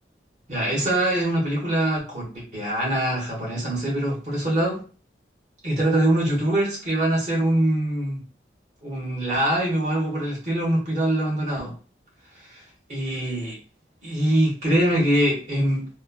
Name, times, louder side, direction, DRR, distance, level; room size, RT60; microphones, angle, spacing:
voice 1, 0.5-4.8 5.6-8.2 8.8-11.7 12.5-12.6 12.9-13.6 14.0-15.9, right 1 dB, 40° right, -3 dB, 1.1 m, -23 dB
3.1 x 2.1 x 2.2 m, 0.35 s
head